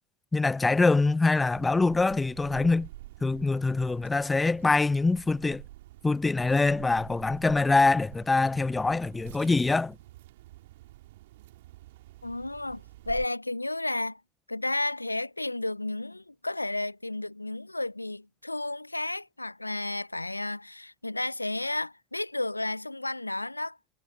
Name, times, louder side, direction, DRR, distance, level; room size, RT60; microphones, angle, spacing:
voice 1, 0.3-2.9 3.2-5.6 6.0-9.9, left 3 dB, 15° left, 0.9 m, -24 dB
sound 1, 1.5-13.3, right 17 dB, 65° right, 2.7 m, -48 dB
voice 2, 12.2-14.2 14.5-23.8, left 2 dB, 90° left, 0.9 m, -32 dB
figure-of-eight pair, 70°, 0 cm